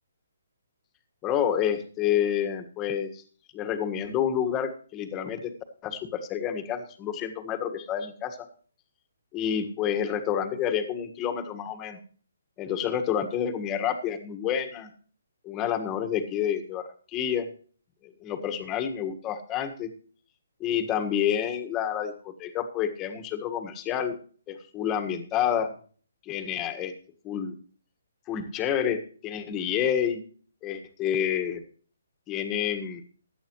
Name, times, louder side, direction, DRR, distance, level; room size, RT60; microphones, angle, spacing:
voice 1, 1.2-3.2 3.5-5.5 5.8-8.4 9.3-12.0 12.6-14.9 15.4-17.5 18.2-19.9 20.6-24.2 24.5-25.7 26.3-26.9 27.2-27.5 28.3-30.2 30.6-31.6 32.3-33.0, left 9 dB, 20° left, 7 dB, 1.6 m, -29 dB
16.5 x 10.5 x 3.1 m, 0.43 s
hypercardioid pair, 150°, 0 cm